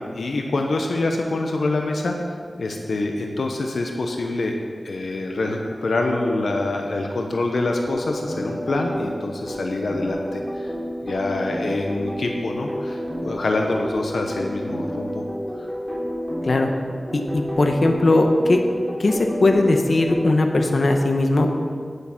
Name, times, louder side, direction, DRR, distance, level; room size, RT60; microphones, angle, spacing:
voice 1, 0.1-4.6 4.8-10.7 11.0-15.2 15.6-15.7, left 2 dB, 90° left, 2 dB, 0.8 m, -25 dB
sound 1, 7.7-20.2, equal, 5° left, 3.3 m, -30 dB
voice 2, 17.1-18.6 19.0-21.5, left 2 dB, 65° left, 4 dB, 1.0 m, -19 dB
9.8 x 8.2 x 5.8 m, 2.1 s
wide cardioid pair, 70°, 0 cm